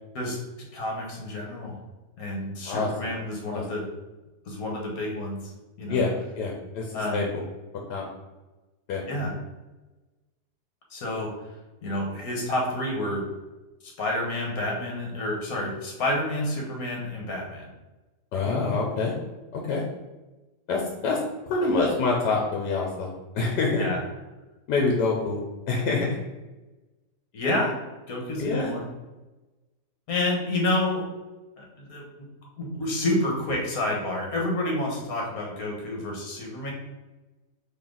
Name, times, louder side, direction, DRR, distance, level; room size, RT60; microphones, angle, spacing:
voice 1, 0.7-1.8 2.2-3.8 4.5-5.5 5.8-6.0 6.9-7.3 9.1-9.3 10.9-11.3 11.8-13.3 13.8-17.7 23.8-24.0 27.3-27.8 28.1-28.8 30.1-31.0 31.6-32.0 32.6-36.7, left 1 dB, 60° left, -1 dB, 1.6 m, -29 dB
voice 2, 2.6-3.1 3.5-3.6 5.9-7.2 7.9-8.1 8.9-9.0 18.3-19.1 19.5-19.8 20.7-21.2 21.5-23.8 24.7-25.4 25.7-26.1 28.4-28.7, left 3 dB, 80° left, -1 dB, 1.3 m, -26 dB
4.3 x 3.1 x 3.8 m, 1.1 s
omnidirectional pair, 1.8 m